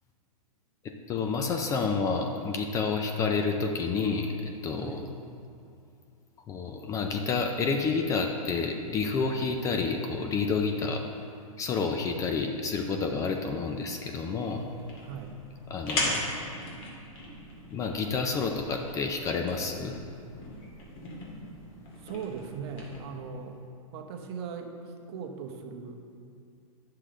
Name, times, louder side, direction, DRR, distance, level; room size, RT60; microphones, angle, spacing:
voice 1, 1.1-5.0 6.5-11.0 11.6-14.6 15.7-16.4 17.7-20.0, left 4 dB, 20° left, 3 dB, 0.4 m, -29 dB
sound 1, 14.5-23.0, left 2 dB, 45° left, 2.1 m, -38 dB
voice 2, 15.0-15.4 22.0-23.6 23.9-26.0, right 6 dB, 45° right, 4 dB, 0.9 m, -39 dB
9.7 x 6.6 x 3.8 m, 2.4 s
hypercardioid pair, 140°, 18 cm